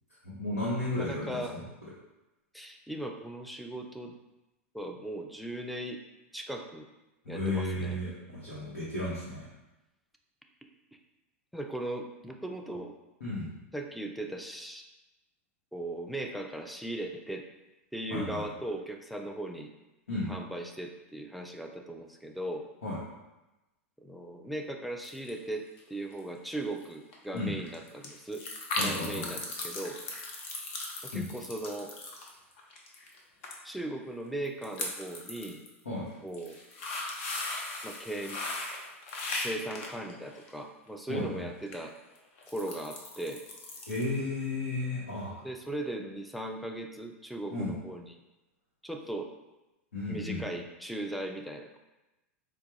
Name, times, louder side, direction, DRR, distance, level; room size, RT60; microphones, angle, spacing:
voice 1, 0.2-1.6 7.2-9.5 13.2-13.5 18.1-18.4 20.1-20.3 22.8-23.0 27.3-27.5 28.8-29.2 31.1-31.2 35.8-36.0 41.1-41.4 43.9-45.3 47.5-47.7 49.9-50.4, left 2 dB, 85° left, -9 dB, 1.1 m, -33 dB
voice 2, 1.0-1.6 2.5-4.2 4.7-6.0 6.3-6.9 7.3-8.0 11.5-13.0 13.7-14.9 15.7-17.5 17.9-19.7 20.3-22.7 24.0-28.5 28.8-30.0 31.0-31.9 33.6-35.6 36.2-36.6 37.8-38.4 39.4-41.9 42.5-43.4 45.4-48.2 48.8-49.3 50.1-51.8, right 1 dB, ahead, 3 dB, 0.4 m, -38 dB
sound 1, 25.0-25.5 25.8-26.2 26.5-26.6 26.8-26.9 27.1-33.2 33.4-33.6 33.8-33.9 34.5-35.7 36.2-40.6 41.6-41.8 42.2-44.2 44.4-44.5, left 2 dB, 60° left, 0.8 m, -38 dB
4.4 x 2.3 x 2.9 m, 1.0 s
hypercardioid pair, 100°, 7 cm